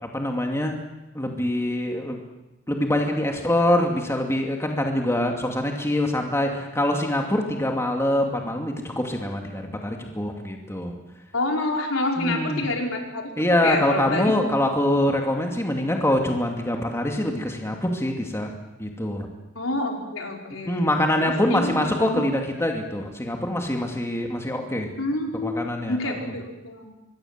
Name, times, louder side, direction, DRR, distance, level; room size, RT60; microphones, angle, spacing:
voice 1, 0.0-0.8 1.1-2.2 2.7-10.9 12.2-12.7 13.4-19.3 20.6-24.9 25.4-26.3, left 1 dB, 15° left, 2 dB, 2.5 m, -24 dB
voice 2, 11.3-13.3 13.6-14.3 19.5-22.2 25.0-26.9, left 2 dB, 75° left, 1 dB, 4.7 m, -28 dB
25.0 x 22.0 x 7.5 m, 0.99 s
head